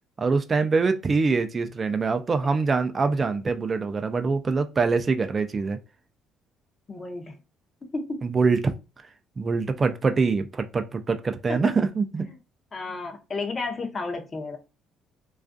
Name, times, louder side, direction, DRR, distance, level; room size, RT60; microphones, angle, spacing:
voice 1, 0.2-5.8 8.2-8.7 9.4-12.3, right 4 dB, 30° right, 0.3 m, -24 dB
voice 2, 6.9-7.4 7.9-8.2 11.5-11.7 12.3-12.4 12.7-14.6, left 3 dB, 30° left, 0.6 m, -32 dB
2.3 x 2.3 x 2.5 m
cardioid pair, 90°, 0 cm